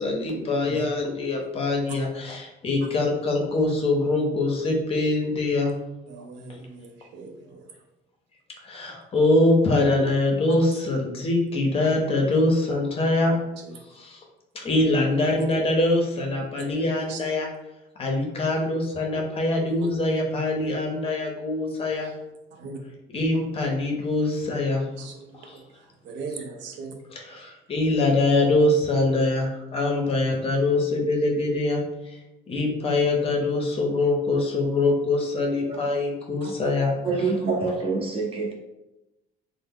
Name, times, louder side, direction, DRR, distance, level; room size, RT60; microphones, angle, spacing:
voice 1, 0.0-5.7 8.6-13.4 14.0-14.2 14.6-17.5 18.0-22.1 23.1-24.8 25.4-25.6 27.1-31.8 32.5-36.9, left 2 dB, 30° left, 0 dB, 0.6 m, -23 dB
voice 2, 6.1-7.6 10.5-10.6 13.6-13.7 16.6-17.2 22.0-22.1 22.6-22.8 25.0-25.6 26.0-26.9 36.4-36.5, right 4 dB, 80° right, 3 dB, 0.6 m, -39 dB
voice 3, 37.0-38.5, right 4 dB, 30° right, 0 dB, 0.7 m, -26 dB
3.2 x 2.1 x 3.6 m, 0.95 s
cardioid pair, 145°, 18 cm